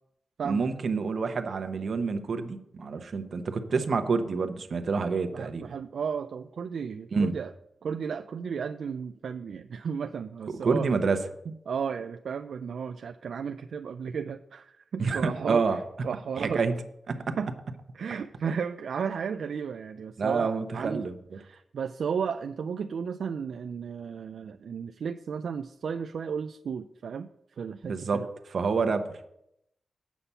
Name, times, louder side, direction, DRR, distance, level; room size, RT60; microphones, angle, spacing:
voice 1, 0.4-5.7 7.1-7.3 10.6-11.2 15.0-15.8 16.4-16.7 17.1-17.4 20.2-21.1 27.8-28.2 28.5-29.3, right 4 dB, 60° right, 7 dB, 0.8 m, -28 dB
voice 2, 5.3-7.5 7.8-10.9 11.5-16.6 17.4-17.5 17.9-21.1 21.4-27.3 27.6-28.3, right 6 dB, 75° right, 8 dB, 0.3 m, -34 dB
8.2 x 5.8 x 5.5 m, 0.78 s
wide cardioid pair, 115°, 0 cm